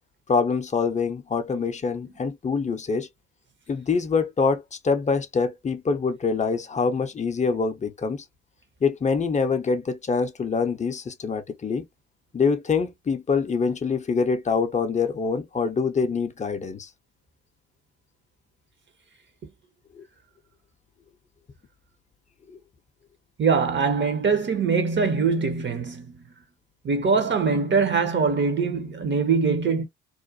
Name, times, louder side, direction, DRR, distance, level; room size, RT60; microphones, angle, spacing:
voice 1, 0.3-3.1 3.7-8.2 8.8-11.8 12.3-16.9 20.0-20.1, left 5 dB, 20° left, 0.6 m, -25 dB
voice 2, 23.4-26.2 26.8-29.9, right 5 dB, 35° right, 0.7 m, -23 dB
2.4 x 2.1 x 2.6 m
hypercardioid pair, 45°, 34 cm